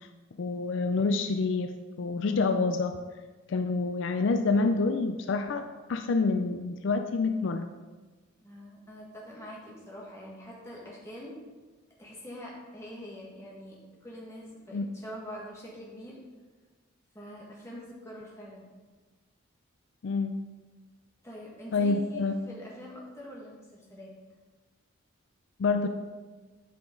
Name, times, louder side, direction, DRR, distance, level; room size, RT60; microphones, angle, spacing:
voice 1, 0.4-3.0 3.5-7.7 14.7-14.9 20.0-20.4 21.7-22.3 25.6-25.9, left 3 dB, 65° left, 7 dB, 0.4 m, -27 dB
voice 2, 8.4-11.4 12.0-16.2 17.1-18.7 21.2-24.1, equal, 15° left, -4 dB, 1.6 m, -44 dB
8.4 x 5.8 x 3.8 m, 1.3 s
head